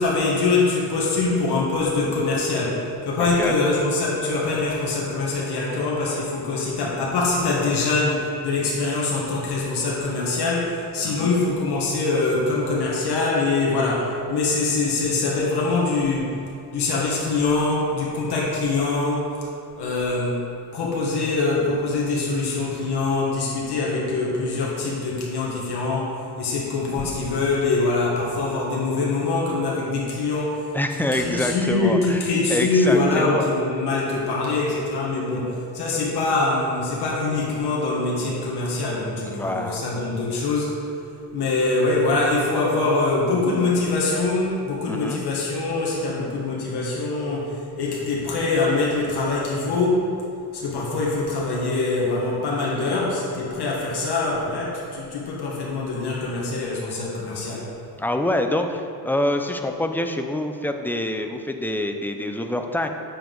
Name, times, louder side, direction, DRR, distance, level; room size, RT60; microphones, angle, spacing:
voice 1, 0.0-16.3 16.7-19.3 19.7-20.4 20.7-30.6 31.1-40.8 41.3-50.2 50.5-57.7, left 3 dB, 70° left, -4 dB, 1.7 m, -23 dB
voice 2, 3.2-3.5 11.0-11.4 30.7-32.2 32.5-33.5 39.2-39.8 44.9-45.2 58.0-62.9, left 1 dB, 5° left, 5 dB, 0.5 m, -26 dB
9.0 x 7.2 x 3.9 m, 2.5 s
cardioid pair, 105°, 40 cm